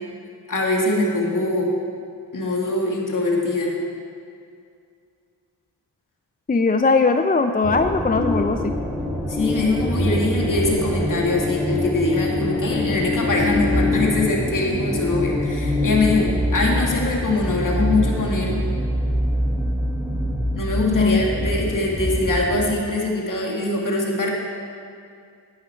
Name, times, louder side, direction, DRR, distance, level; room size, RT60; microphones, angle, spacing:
voice 1, 0.5-1.7 2.3-3.7 9.3-18.6 20.5-24.3, left 2 dB, 45° left, -1 dB, 2.5 m, -22 dB
voice 2, 6.5-8.7 20.8-21.2, left 4 dB, 20° left, 7 dB, 0.6 m, -19 dB
sound 1, 7.6-22.7, left 1 dB, 5° right, 1.5 m, -24 dB
11.0 x 9.7 x 4.6 m, 2.3 s
supercardioid pair, 40°, 45 cm